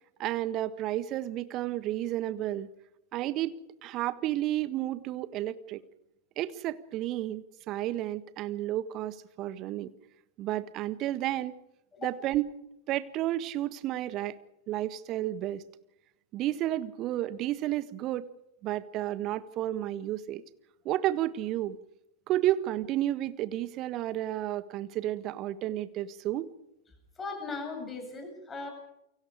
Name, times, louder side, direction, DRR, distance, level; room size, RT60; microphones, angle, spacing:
voice 1, 0.2-2.7 3.1-5.8 6.4-9.9 10.4-11.5 12.0-12.5 12.9-14.4 14.7-15.6 16.3-18.3 18.6-20.4 20.8-21.8 22.3-26.5, right 14 dB, 35° right, 14 dB, 1.5 m, -31 dB
voice 2, 27.2-28.7, left 4 dB, 20° left, 4 dB, 7.9 m, -38 dB
29.0 x 24.5 x 5.0 m, 0.84 s
figure-of-eight pair, 90°, 0 cm